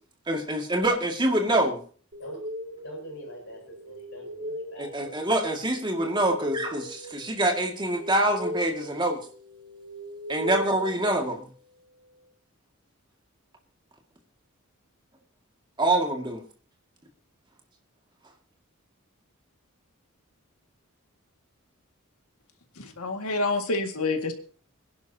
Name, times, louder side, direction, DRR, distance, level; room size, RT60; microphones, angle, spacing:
voice 1, 0.3-1.8 4.8-9.2 10.3-11.5 15.8-16.4, right 1 dB, 20° right, 2 dB, 2.1 m, -25 dB
sound 1, 2.1-11.8, equal, 45° right, 2.2 m, -39 dB
voice 2, 2.8-5.0, equal, 55° left, -3 dB, 6.7 m, -43 dB
voice 3, 22.8-24.3, left 3 dB, 90° left, 5 dB, 2.0 m, -28 dB
25.5 x 11.0 x 2.8 m, 0.43 s
head